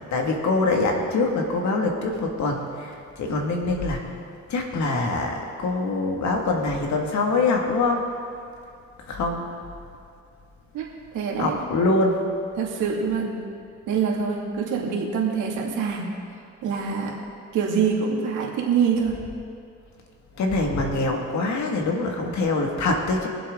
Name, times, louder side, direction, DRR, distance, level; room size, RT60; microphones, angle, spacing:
voice 1, 0.1-4.0 4.5-8.0 9.1-9.5 11.4-12.2 20.4-23.3, left 3 dB, 65° left, 1 dB, 2.1 m, -24 dB
voice 2, 11.1-11.6 12.5-13.4 13.9-16.1 16.6-17.1 17.5-19.2, right 6 dB, 90° right, -2 dB, 2.4 m, -25 dB
23.0 x 7.8 x 3.8 m, 2.4 s
cardioid pair, 90°, 30 cm